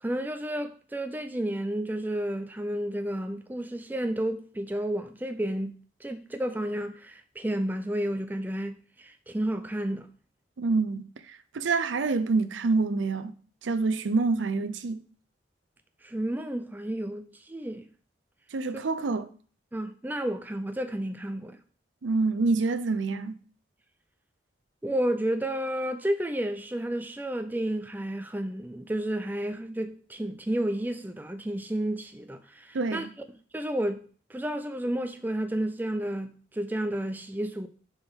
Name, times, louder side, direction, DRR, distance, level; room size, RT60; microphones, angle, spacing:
voice 1, 0.0-5.7 6.0-10.1 16.0-17.9 18.7-18.8 19.7-21.6 24.8-33.1 33.5-37.7, right 1 dB, 10° right, 0.4 m, -31 dB
voice 2, 10.6-13.3 13.6-15.0 18.5-19.3 22.0-23.4 32.7-33.1, right 3 dB, 80° right, 0.5 m, -27 dB
6.5 x 4.5 x 3.6 m
head